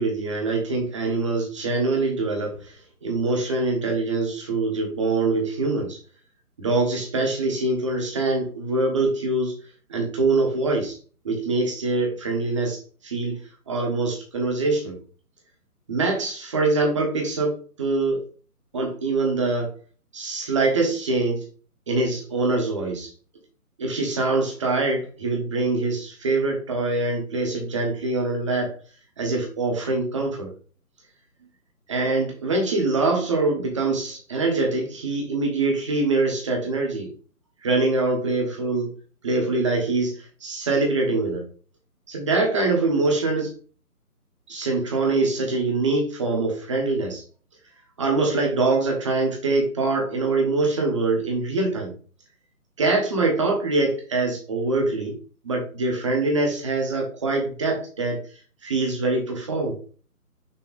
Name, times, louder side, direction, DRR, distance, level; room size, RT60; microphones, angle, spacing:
voice 1, 0.0-2.8 3.0-6.0 6.6-9.6 9.9-11.0 11.2-13.4 13.7-15.0 15.9-18.2 18.7-19.7 20.1-21.4 21.9-23.1 23.8-28.7 29.2-30.5 31.9-37.1 37.6-38.9 39.2-40.1 40.4-41.4 42.1-43.5 44.5-47.2 48.0-52.0 52.8-55.2 55.4-58.2 58.6-59.8, right 3 dB, 20° right, 1 dB, 1.1 m, -24 dB
6.1 x 3.2 x 5.1 m, 0.41 s
hypercardioid pair, 160°, 46 cm